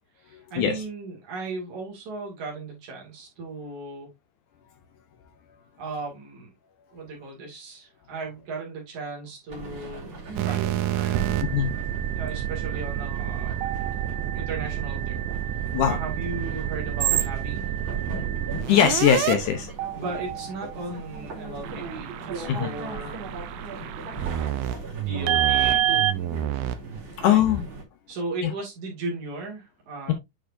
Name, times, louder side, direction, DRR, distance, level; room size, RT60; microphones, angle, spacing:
voice 1, 0.2-4.1 5.8-6.5 6.9-11.3 12.2-13.6 14.3-15.2 15.5-17.6 19.9-23.2 23.8-24.1 24.9-26.1 27.2-27.4 28.1-30.1, right 3 dB, 60° right, 3.6 m, -36 dB
sound 1, 9.5-27.8, right 4 dB, 35° right, 3.4 m, -38 dB
sound 2, 10.4-19.3 19.8-21.2 21.6-27.0, right 11 dB, 85° right, 2.6 m, -28 dB
voice 2, 18.7-19.7 22.5-22.7 27.2-27.7 28.4-28.5, left 9 dB, 70° left, 2.1 m, -21 dB
8.8 x 4.9 x 2.6 m
omnidirectional pair, 4.1 m